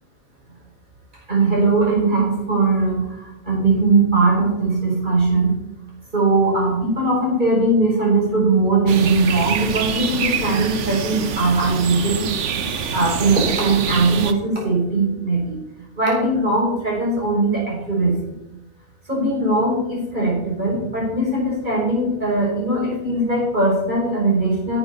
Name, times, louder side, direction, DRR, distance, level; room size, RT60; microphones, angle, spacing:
voice 1, 1.3-5.5 6.1-12.3 12.9-15.6 16.0-18.4 19.1-24.8, right 2 dB, 40° right, -4 dB, 5.5 m, -20 dB
sound 1, 8.9-14.3, right 7 dB, 75° right, 1.2 m, -26 dB
11.0 x 7.8 x 7.0 m, 0.91 s
omnidirectional pair, 1.2 m